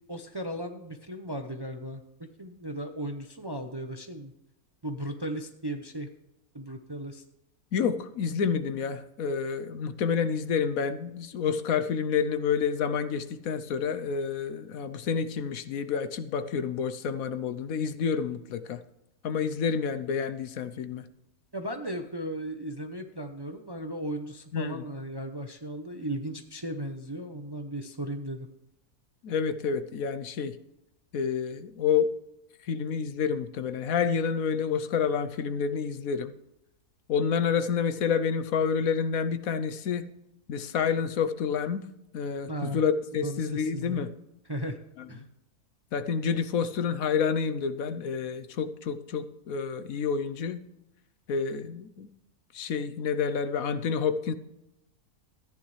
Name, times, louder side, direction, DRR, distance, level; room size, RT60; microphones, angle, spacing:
voice 1, 0.1-2.0 2.4-4.3 4.8-6.1 6.5-7.2 21.5-28.5 42.5-42.8 43.2-44.0 44.5-44.8 45.1-45.2, right 1 dB, 25° right, 6 dB, 0.6 m, -36 dB
voice 2, 7.7-18.8 19.2-21.0 24.5-24.8 29.2-30.6 31.1-32.1 32.6-36.3 37.1-40.1 40.5-41.9 42.1-44.1 45.0-45.1 45.9-50.6 51.3-52.1 52.5-54.3, left 6 dB, 75° left, 12 dB, 1.2 m, -29 dB
14.0 x 9.9 x 3.2 m, 0.87 s
omnidirectional pair, 1.5 m